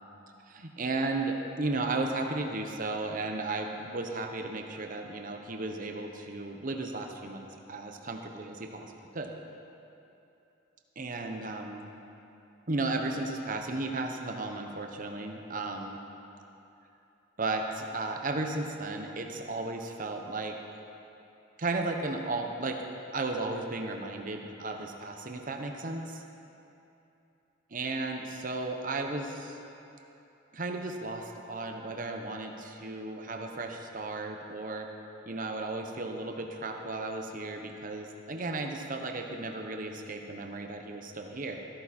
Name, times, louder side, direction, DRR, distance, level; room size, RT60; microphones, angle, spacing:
voice 1, 0.5-9.3 11.0-11.9 12.7-16.0 17.4-20.6 21.6-22.8 23.1-26.2 27.7-29.6 30.5-34.9 35.3-41.6, right 2 dB, 45° right, 3 dB, 0.9 m, -34 dB
14.0 x 13.0 x 4.3 m, 2.8 s
head